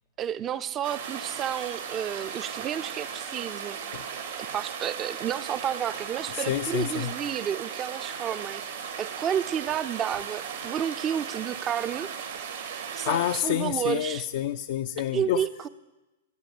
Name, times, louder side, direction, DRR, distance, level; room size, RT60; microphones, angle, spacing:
voice 1, 0.2-3.8 4.5-8.6 9.0-12.1 12.9-14.3 15.1-15.7, right 9 dB, 30° right, 15 dB, 0.6 m, -31 dB
sound 1, 0.8-13.4, right 7 dB, 70° right, 2.6 m, -37 dB
voice 2, 6.3-7.1 13.1-15.4, left 12 dB, 60° left, 8 dB, 0.4 m, -28 dB
14.5 x 8.9 x 7.9 m, 1.1 s
hypercardioid pair, 120°, 0 cm